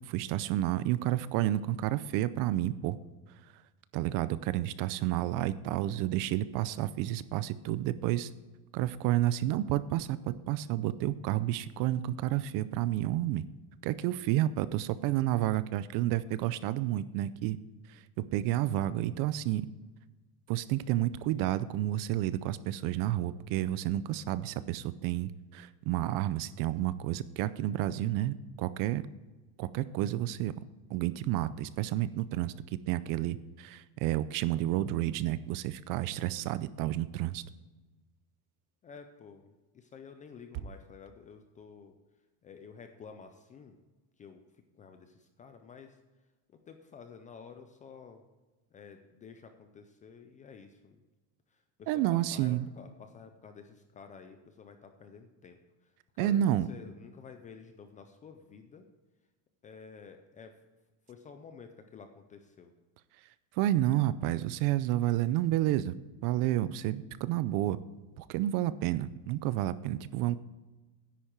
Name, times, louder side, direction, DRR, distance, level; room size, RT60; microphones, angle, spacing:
voice 1, 0.1-3.0 3.9-8.3 8.7-13.4 13.8-17.6 17.9-19.7 20.5-29.1 29.6-30.5 30.9-32.5 32.9-37.4 51.9-52.7 56.2-56.7 63.6-66.0 66.2-67.8 68.2-70.4, right 13 dB, 50° right, 16 dB, 0.5 m, -30 dB
voice 2, 38.8-42.0 42.4-43.8 44.2-46.0 46.5-48.2 48.7-51.0 51.5-58.9 59.6-60.6 61.1-62.7, left 6 dB, 20° left, 7 dB, 0.3 m, -51 dB
10.0 x 8.5 x 4.5 m, 1.2 s
cardioid pair, 165°, 44 cm